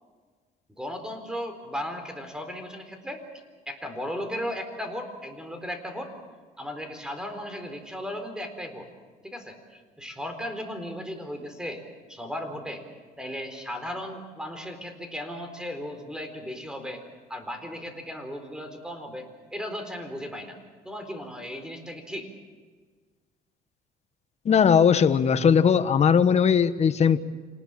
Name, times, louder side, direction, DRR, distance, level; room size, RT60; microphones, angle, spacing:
voice 1, 0.8-6.1 6.6-8.9 9.2-11.8 12.1-12.8 13.2-17.0 17.3-20.6 20.8-22.3, equal, 5° right, 6 dB, 4.1 m, -36 dB
voice 2, 24.4-27.2, left 7 dB, 40° left, 11 dB, 1.2 m, -19 dB
27.0 x 19.5 x 7.5 m, 1.5 s
cardioid pair, 110°, 17 cm